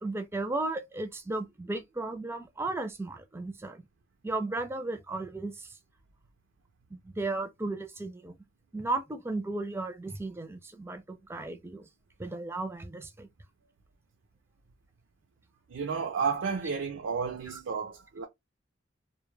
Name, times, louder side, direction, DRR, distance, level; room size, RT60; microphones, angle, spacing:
voice 1, 0.0-3.8 4.2-5.7 6.9-8.3 8.7-11.9 12.2-13.3, right 2 dB, 15° right, 0.4 m, -35 dB
voice 2, 15.7-18.3, right 5 dB, 80° right, 0.4 m, -32 dB
2.2 x 2.1 x 3.1 m
head